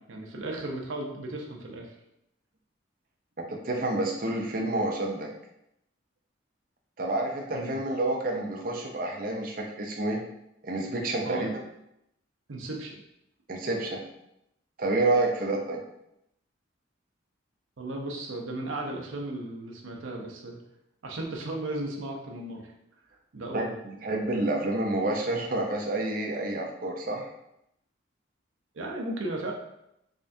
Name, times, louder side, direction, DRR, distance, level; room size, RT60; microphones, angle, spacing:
voice 1, 0.0-2.0 7.5-7.8 11.2-11.6 12.5-12.9 17.8-20.6 21.0-22.7 23.3-23.7 28.7-29.5, right 2 dB, 85° right, 1 dB, 0.7 m, -35 dB
voice 2, 3.4-5.3 7.0-10.2 10.6-11.5 13.5-14.0 14.8-15.8 23.5-27.3, right 2 dB, 45° right, 0 dB, 0.6 m, -29 dB
3.6 x 3.4 x 2.6 m, 0.80 s
head